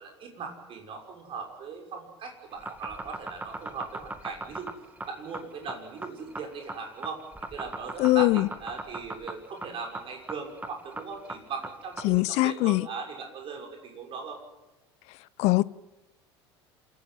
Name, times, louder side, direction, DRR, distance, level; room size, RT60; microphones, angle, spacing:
voice 1, 0.0-4.7 5.1-7.2 7.5-14.4, right 5 dB, 40° right, 6.4 m, -39 dB
sound 1, 2.5-12.2, right 2 dB, 10° right, 2.2 m, -38 dB
voice 2, 8.0-8.5 12.0-12.9 15.1-15.6, left 20 dB, 50° left, 0.7 m, -23 dB
27.5 x 15.0 x 9.3 m
figure-of-eight pair, 70°, 14 cm